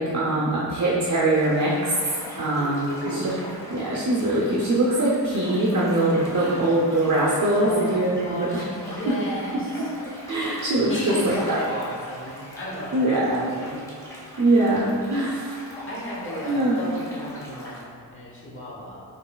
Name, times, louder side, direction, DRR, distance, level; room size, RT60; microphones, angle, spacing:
voice 1, 0.0-3.3 3.7-8.1 8.4-8.6 9.1-9.2 10.3-11.6 12.9-13.4 14.4-15.7 16.4-16.8, right 1 dB, 45° right, -5 dB, 0.6 m, -22 dB
sound 1, 1.3-17.8, left 1 dB, 5° left, 1.1 m, -40 dB
voice 2, 2.3-3.3 6.3-6.7 7.5-9.9 10.9-13.8 15.9-19.0, equal, 30° left, -6 dB, 1.0 m, -34 dB
5.2 x 3.1 x 2.2 m, 2.3 s
wide cardioid pair, 95°, 42 cm